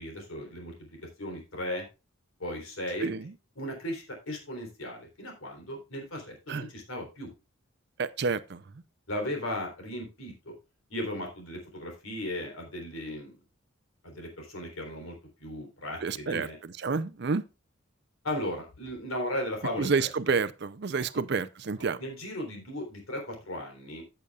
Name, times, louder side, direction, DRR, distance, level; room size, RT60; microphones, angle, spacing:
voice 1, 0.0-1.9 2.4-3.1 3.6-7.3 9.1-10.5 10.9-13.3 14.0-16.6 18.2-20.1 21.1-21.2 22.0-24.0, left 1 dB, 80° left, 3.6 m, -36 dB
voice 2, 8.0-8.6 16.0-16.5 16.8-17.4 19.8-22.0, right 4 dB, 50° right, 0.5 m, -29 dB
15.0 x 6.9 x 2.4 m
head